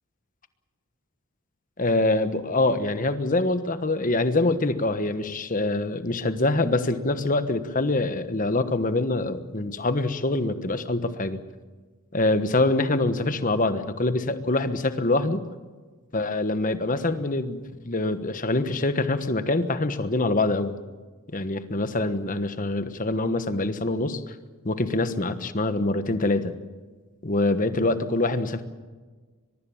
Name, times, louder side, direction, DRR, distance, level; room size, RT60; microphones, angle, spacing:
voice 1, 1.8-11.4 12.1-15.4 16.1-20.7 21.3-24.2 24.6-26.5 27.2-28.6, left 2 dB, 35° left, 11 dB, 1.3 m, -25 dB
23.0 x 22.5 x 7.2 m, 1.4 s
head